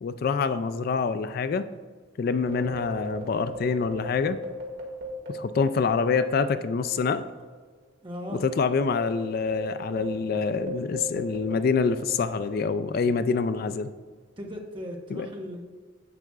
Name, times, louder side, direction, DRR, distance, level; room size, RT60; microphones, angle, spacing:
voice 1, 0.0-1.7 2.2-4.4 5.3-7.2 8.4-13.9 15.1-15.3, left 5 dB, 50° left, 12 dB, 0.3 m, -26 dB
sound 1, 2.3-7.1 7.4-7.5 8.1-12.9, right 1 dB, 60° right, 1.9 m, -38 dB
voice 2, 8.0-8.4 14.4-15.6, equal, 25° right, 1 dB, 1.1 m, -37 dB
10.5 x 7.8 x 2.4 m, 1.5 s
head